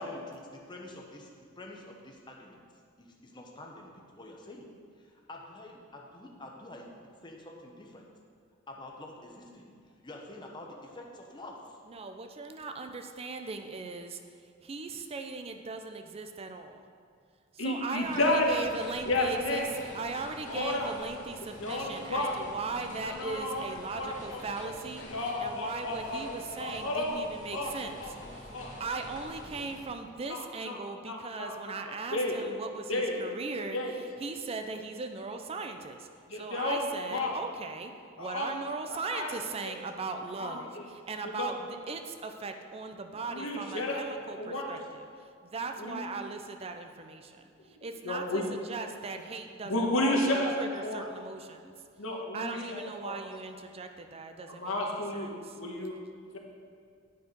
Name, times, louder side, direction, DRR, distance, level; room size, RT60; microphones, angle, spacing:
voice 1, 0.0-2.6 3.0-4.7 5.0-6.9 7.2-8.1 8.7-9.7 10.0-11.8, left 1 dB, 25° left, 0 dB, 0.9 m, -47 dB
voice 2, 11.9-14.2 14.6-16.8 17.5-25.0 25.4-37.9 38.2-45.0 45.4-51.7 52.3-55.3, right 4 dB, 30° right, 6 dB, 0.4 m, -39 dB
voice 3, 17.6-18.5 19.1-19.7 20.5-20.9 21.6-22.3 23.0-23.7 24.0-24.7 25.0-26.3 26.6-27.1 27.5-27.7 28.0-28.1 28.5-28.7 30.3-30.8 31.1-31.6 32.1-32.4 32.9-33.1 33.7-33.9 36.3-37.3 38.2-38.5 38.9-39.4 39.6-39.7 40.4-40.8 41.4-41.5 43.3-44.0 44.4-44.7 45.8-46.0 48.0-48.4 49.6-50.5 50.8-51.1 52.0-53.2 54.5-55.3 55.6-55.9, left 1 dB, 85° left, 0 dB, 1.2 m, -32 dB
sound 1, 18.0-29.8, left 1 dB, 40° left, 1.5 m, -47 dB
9.3 x 4.6 x 5.2 m, 2.2 s
head